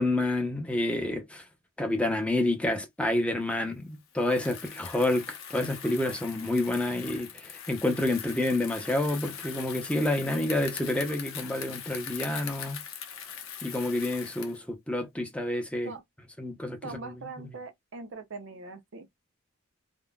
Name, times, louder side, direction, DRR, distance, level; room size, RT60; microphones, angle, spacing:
voice 1, 0.0-1.4 1.8-12.8 13.6-15.9 16.4-16.8, left 1 dB, 5° left, 0.6 m, -29 dB
Bicycle, 4.1-14.6, left 8 dB, 80° left, 0.8 m, -41 dB
voice 2, 16.8-19.1, right 3 dB, 60° right, 0.6 m, -41 dB
3.7 x 2.1 x 2.2 m
head